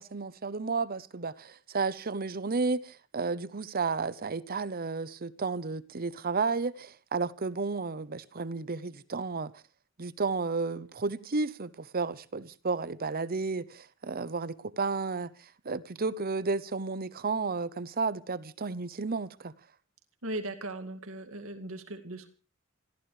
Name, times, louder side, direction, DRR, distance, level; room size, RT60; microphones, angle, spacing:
voice 1, 0.0-9.5 10.0-19.5, right 4 dB, 45° right, 0.8 m, -32 dB
voice 2, 20.2-22.3, right 1 dB, 75° right, 2.2 m, -38 dB
27.5 x 14.5 x 3.3 m
head